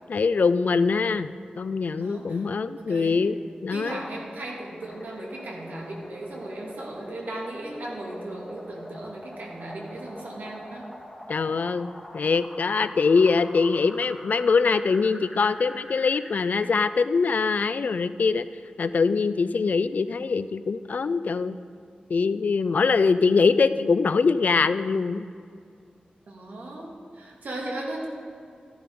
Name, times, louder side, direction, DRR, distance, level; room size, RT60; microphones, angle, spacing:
voice 1, 0.1-1.3 1.6-3.4 3.6-4.0 11.3-18.5 18.8-21.6 22.1-25.3, left 4 dB, 65° left, 13 dB, 0.4 m, -23 dB
voice 2, 2.0-2.4 2.7-3.3 3.7-10.9 26.3-28.1, right 1 dB, 85° right, -2 dB, 2.1 m, -37 dB
sound 1, 4.8-16.8, left 1 dB, 15° left, 1.9 m, -44 dB
14.0 x 10.5 x 3.7 m, 2.4 s
wide cardioid pair, 95°, 3 cm